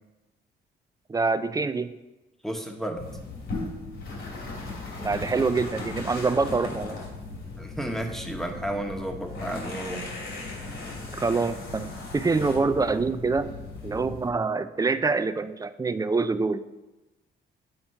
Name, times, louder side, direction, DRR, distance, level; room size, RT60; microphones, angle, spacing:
voice 1, 1.1-1.9 5.0-7.0 11.2-16.6, right 4 dB, 20° right, 12 dB, 0.4 m, -26 dB
voice 2, 2.4-3.0 7.6-10.0, right 1 dB, ahead, 3 dB, 1.1 m, -32 dB
sound 1, 3.0-14.3, left 3 dB, 80° left, 2.9 m, -37 dB
7.9 x 4.3 x 5.6 m, 1.0 s
cardioid pair, 90°, 20 cm